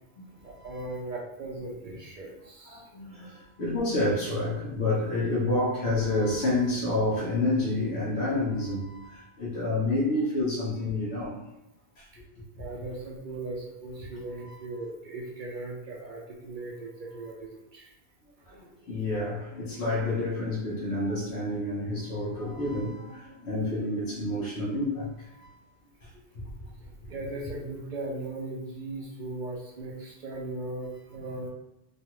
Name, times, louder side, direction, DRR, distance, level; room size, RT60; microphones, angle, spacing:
voice 1, 0.4-2.9 12.6-17.9 27.1-31.5, right 2 dB, 55° right, -2 dB, 0.6 m, -38 dB
voice 2, 2.7-11.4 12.6-12.7 18.5-25.1 25.4-25.5, left 2 dB, 75° left, -8 dB, 1.1 m, -29 dB
3.1 x 2.3 x 2.9 m, 0.91 s
omnidirectional pair, 1.1 m